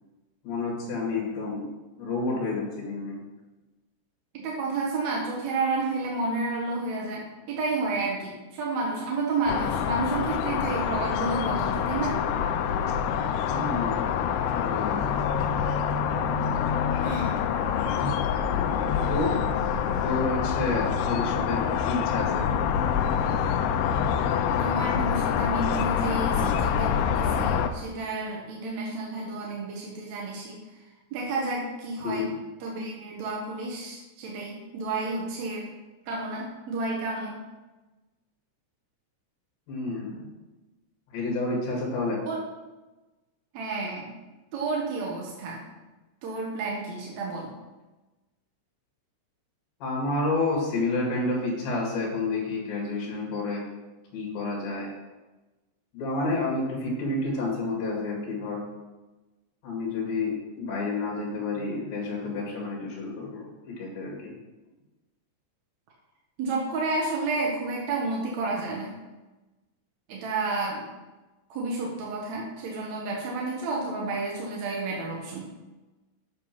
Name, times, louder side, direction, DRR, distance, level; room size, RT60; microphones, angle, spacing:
voice 1, 0.4-1.7 2.0-3.2 13.5-14.0 14.5-15.2 18.0-18.1 19.1-19.4 20.0-22.5 32.0-32.2 39.7-40.2 41.1-42.2 49.8-53.6 54.1-54.9 55.9-58.6 59.6-64.3, left 3 dB, 65° left, -3 dB, 3.4 m, -29 dB
voice 2, 4.3-12.2 17.0-17.4 24.6-30.6 31.1-32.3 32.6-35.7 36.1-37.4 42.3-42.4 43.5-44.1 44.5-45.6 46.2-47.5 66.4-68.9 70.1-70.9 71.5-75.5, right 3 dB, 60° right, -2 dB, 1.9 m, -31 dB
sound 1, 9.5-27.7, left 8 dB, 85° left, 2.6 m, -26 dB
8.4 x 6.8 x 5.8 m, 1.1 s
omnidirectional pair, 4.8 m